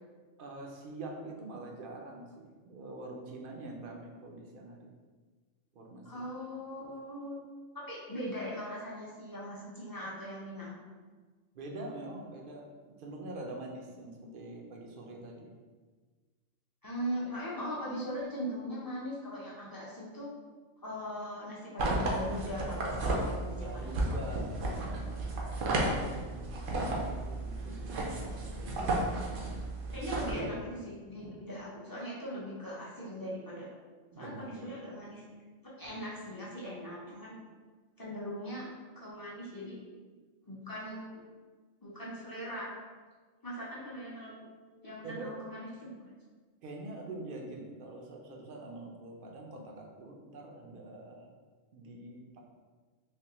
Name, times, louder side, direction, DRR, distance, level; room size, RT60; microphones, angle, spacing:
voice 1, 0.4-4.9 5.7-6.1 11.5-15.5 23.6-30.6 34.1-34.6 35.8-36.1 45.0-45.4 46.6-51.4 51.7-52.4, right 2 dB, 60° right, 0 dB, 0.6 m, -45 dB
voice 2, 6.0-7.4 7.7-10.8 16.8-20.3 20.8-24.1 29.9-33.7 34.2-35.2 35.8-37.4 38.0-38.7 39.0-39.8 40.5-41.2 41.8-42.7 43.4-44.5 44.8-46.1, equal, 25° left, -6 dB, 0.5 m, -40 dB
sound 1, 21.8-30.3, right 2 dB, 80° right, 1.0 m, -33 dB
3.4 x 2.9 x 2.9 m, 1.4 s
omnidirectional pair, 1.3 m